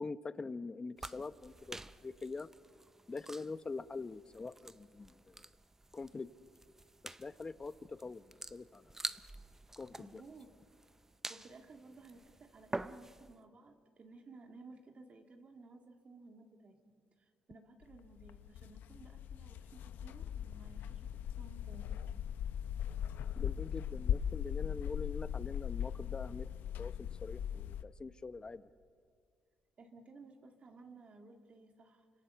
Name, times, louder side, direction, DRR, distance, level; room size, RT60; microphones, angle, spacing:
voice 1, 0.0-2.5 3.1-5.4 5.9-6.3 7.0-8.9 9.8-10.2 23.4-26.5 26.8-28.7, left 3 dB, 25° left, 13 dB, 0.8 m, -44 dB
sound 1, 1.0-13.4, right 2 dB, 15° right, 0.6 m, -48 dB
voice 2, 10.0-10.5 11.3-21.1 21.4-22.0 29.8-32.1, right 3 dB, 40° right, 4 dB, 2.1 m, -56 dB
sound 2, 17.8-27.8, left 9 dB, 80° left, 0.8 m, -39 dB
29.0 x 25.5 x 6.9 m, 2.1 s
cardioid pair, 100°, 3 cm